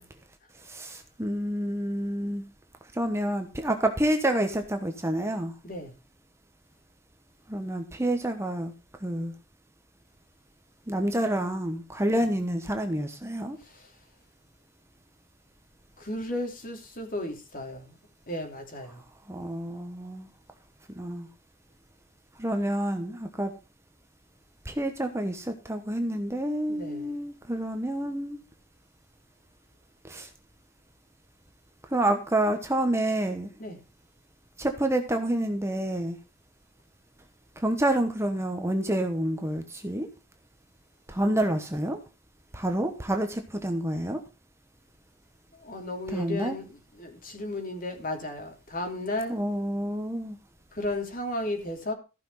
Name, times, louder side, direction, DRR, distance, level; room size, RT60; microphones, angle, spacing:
voice 1, 0.6-2.4 2.9-5.5 7.5-8.7 9.0-9.3 10.9-13.6 19.3-20.3 21.0-21.3 22.4-23.5 24.6-28.4 30.0-30.3 31.9-33.5 34.6-36.2 37.6-40.1 41.1-42.0 42.5-44.2 46.1-46.6 49.3-50.4, right 1 dB, 15° right, 1.1 m, -28 dB
voice 2, 16.0-18.0 18.3-19.0 26.7-27.2 33.6-33.8 45.5-49.4 50.7-51.9, left 1 dB, 45° left, 3.0 m, -34 dB
14.5 x 6.1 x 5.5 m
head